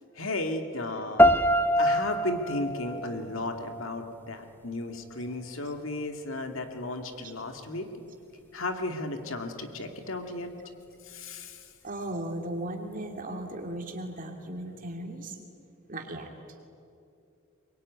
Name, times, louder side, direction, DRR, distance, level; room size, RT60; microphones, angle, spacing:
voice 1, 0.1-1.5 1.8-7.9 8.5-10.5 11.0-11.7, left 2 dB, 65° left, 6 dB, 2.3 m, -34 dB
sound 1, 1.2-4.2, equal, 10° left, 0.7 m, -25 dB
voice 2, 11.8-15.4 15.9-16.3, right 1 dB, 40° right, 3 dB, 3.0 m, -36 dB
23.0 x 22.5 x 9.6 m, 2.6 s
head